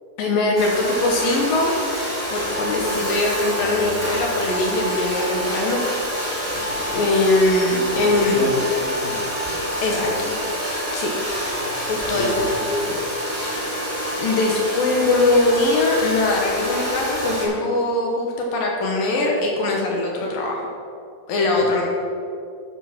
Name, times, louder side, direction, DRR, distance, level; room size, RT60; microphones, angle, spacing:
voice 1, 0.2-5.8 6.9-8.5 9.8-10.4 10.9-11.1 11.9-12.3 14.2-20.6 21.3-21.8, left 2 dB, 70° left, -1 dB, 2.5 m, -21 dB
Domestic sounds home sounds, 0.5-17.4, equal, 10° left, 0.6 m, -27 dB
voice 2, 6.5-7.1 7.9-9.3 10.0-10.5 12.1-13.0 21.6-21.8, left 2 dB, 85° left, -1 dB, 1.7 m, -30 dB
12.0 x 5.4 x 5.9 m, 2.5 s
omnidirectional pair, 4.8 m